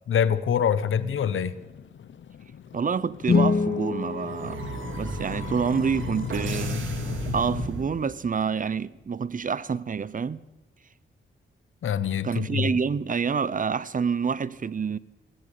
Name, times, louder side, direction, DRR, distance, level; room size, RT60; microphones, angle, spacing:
voice 1, 0.1-1.5 11.8-12.7, left 8 dB, 85° left, 1.2 m, -25 dB
sound 1, 0.8-7.7, left 8 dB, 70° left, 0.9 m, -38 dB
voice 2, 2.7-4.7 5.0-6.8 7.3-10.4 12.2-15.0, right 6 dB, 40° right, 0.8 m, -27 dB
sound 2, 3.2-5.4, left 4 dB, 55° left, 2.1 m, -26 dB
sound 3, 3.4-8.4, right 3 dB, 75° right, 3.2 m, -36 dB
22.5 x 17.0 x 8.4 m
cardioid pair, 90°, 20 cm